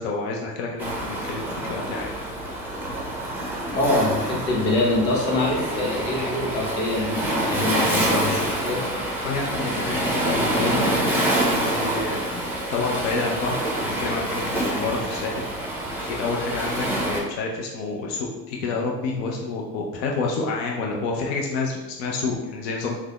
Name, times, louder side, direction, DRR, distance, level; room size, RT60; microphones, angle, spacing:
voice 1, 0.0-2.1 9.2-15.4 16.0-22.9, left 3 dB, 50° left, -1 dB, 0.6 m, -29 dB
Waves surf, 0.8-17.2, right 1 dB, 5° right, 0.6 m, -26 dB
voice 2, 3.7-8.8, left 2 dB, 80° left, -3 dB, 0.9 m, -24 dB
2.7 x 2.1 x 3.8 m, 1.1 s
figure-of-eight pair, 70°, 50 cm